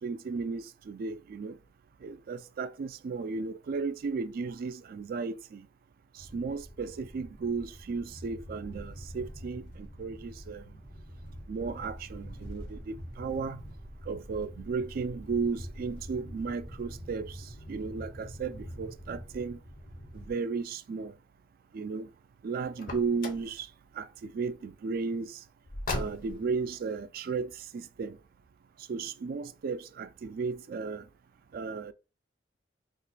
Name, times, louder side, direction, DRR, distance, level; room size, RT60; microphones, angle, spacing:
voice 1, 0.0-1.6 2.0-5.7 6.2-10.6 11.5-13.6 14.1-19.6 20.1-21.1 21.7-22.1 22.4-23.7 23.9-25.4 25.9-28.2 28.9-31.1 31.5-31.9, right 4 dB, 50° right, 0.3 m, -35 dB
sound 1, 6.2-20.3, equal, 75° left, 1.2 m, -45 dB
Car, 22.8-23.5 25.6-26.5, left 2 dB, 50° left, 0.6 m, -36 dB
2.5 x 2.2 x 3.9 m
head